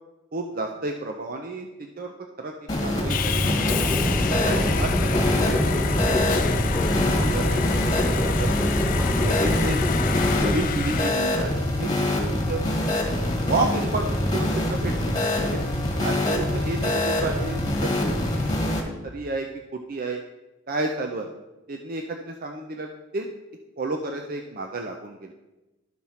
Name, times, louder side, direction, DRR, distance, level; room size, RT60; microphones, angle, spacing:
voice 1, 0.3-2.5 2.8-3.6 4.1-6.6 6.9-8.7 9.2-9.8 10.3-12.6 13.4-18.8 19.0-20.2 20.7-21.3 21.7-23.3 23.8-25.3, right 2 dB, 45° right, 3 dB, 0.6 m, -32 dB
sound 1, 2.7-18.8, left 1 dB, 20° left, 1.6 m, -25 dB
Sawing, 3.1-11.1, left 9 dB, 40° left, 0.3 m, -31 dB
sound 2, 3.6-10.7, left 1 dB, ahead, 2.6 m, -25 dB
12.0 x 4.4 x 5.7 m, 1.1 s
head